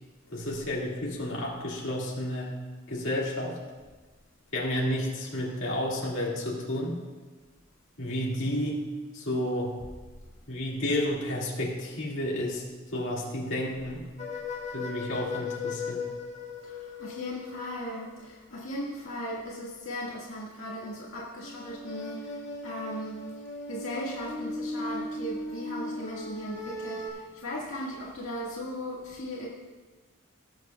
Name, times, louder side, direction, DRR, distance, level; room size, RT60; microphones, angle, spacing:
voice 1, 0.3-2.6 2.9-3.6 4.5-7.0 8.0-8.9 9.1-9.8 10.5-12.6 12.9-14.1 14.7-16.1, left 1 dB, 65° left, -4 dB, 2.1 m, -31 dB
sound 1, 14.2-18.1 21.4-27.1, left 3 dB, 35° left, 1.6 m, -37 dB
voice 2, 16.6-23.2 23.7-29.5, left 1 dB, 80° left, -5 dB, 1.8 m, -37 dB
19.0 x 8.0 x 2.3 m, 1.3 s
head